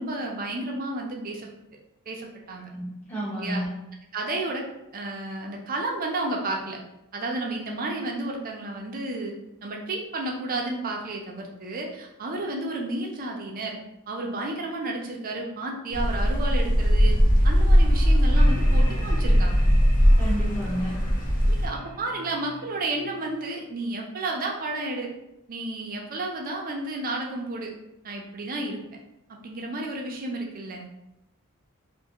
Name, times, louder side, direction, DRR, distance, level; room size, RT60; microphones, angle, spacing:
voice 1, 0.0-1.5 2.1-2.7 3.4-3.6 4.1-4.6 4.9-6.8 7.1-9.3 9.6-13.8 14.1-17.2 17.4-19.6 21.5-25.1 25.5-27.7 28.0-28.8 29.3-30.9, right 2 dB, 40° right, 0 dB, 0.5 m, -32 dB
voice 2, 2.5-3.7 20.2-20.9, equal, 10° left, -8 dB, 0.8 m, -31 dB
sound 1, 15.9-21.7, equal, 35° left, 0.4 m, -19 dB
sound 2, 18.3-23.3, right 1 dB, 85° left, 1.2 m, -39 dB
2.5 x 2.4 x 2.8 m, 0.87 s
head